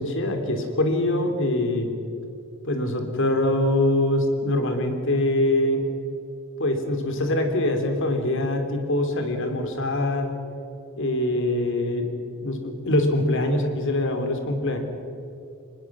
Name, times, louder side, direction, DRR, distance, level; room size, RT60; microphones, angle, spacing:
voice 1, 0.0-1.9 2.6-5.8 6.6-10.3 11.0-12.1 12.4-14.8, left 1 dB, 60° left, 5 dB, 3.1 m, -23 dB
26.0 x 20.5 x 6.2 m, 2.8 s
head